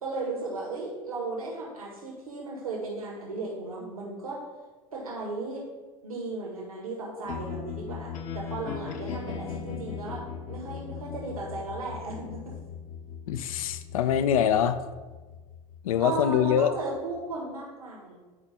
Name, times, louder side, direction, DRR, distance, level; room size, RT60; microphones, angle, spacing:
voice 1, 0.0-4.5 4.9-5.7 6.0-12.5 16.0-18.2, right 3 dB, 90° right, -3 dB, 1.7 m, -35 dB
sound 1, 7.2-17.3, left 6 dB, 45° left, 0.9 m, -39 dB
voice 2, 13.3-14.8 15.8-16.7, left 9 dB, 75° left, 11 dB, 0.5 m, -24 dB
9.5 x 5.0 x 3.4 m, 1.3 s
hypercardioid pair, 80°, 18 cm